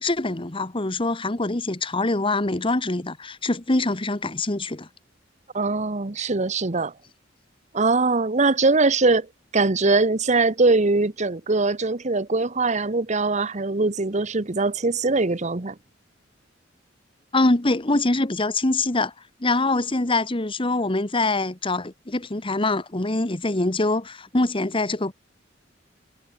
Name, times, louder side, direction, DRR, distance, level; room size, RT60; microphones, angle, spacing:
voice 1, 0.0-4.9 17.3-19.1 19.4-25.1, left 2 dB, 25° left, 1.3 m, -24 dB
voice 2, 5.5-6.9 7.7-9.3 9.5-15.7, right 3 dB, 40° right, 1.1 m, -22 dB
head